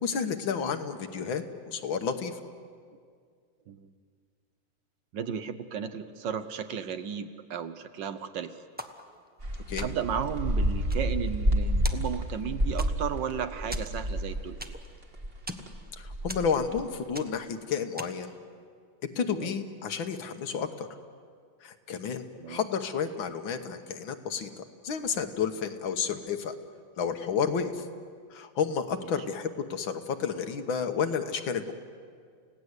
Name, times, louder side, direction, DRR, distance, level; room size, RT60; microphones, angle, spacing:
voice 1, 0.0-2.4 9.7-9.9 16.0-18.3 19.2-20.9 21.6-26.5 27.0-27.9 28.3-31.7, left 6 dB, 70° left, 8 dB, 1.9 m, -31 dB
voice 2, 5.1-8.5 9.8-14.6 19.3-19.5 22.3-22.6, right 8 dB, 65° right, 11 dB, 1.4 m, -34 dB
sound 1, 8.8-9.4 9.8-10.2 10.7-11.6 11.8-12.4 12.8-13.2 13.7-15.0 15.3-15.7 16.3-16.8 17.1-17.5 18.0-18.3, right 1 dB, 10° right, 0.5 m, -42 dB
sound 2, 9.4-14.8 15.1-16.8, equal, 30° right, 1.9 m, -29 dB
30.0 x 17.5 x 8.1 m, 2.1 s
omnidirectional pair, 2.3 m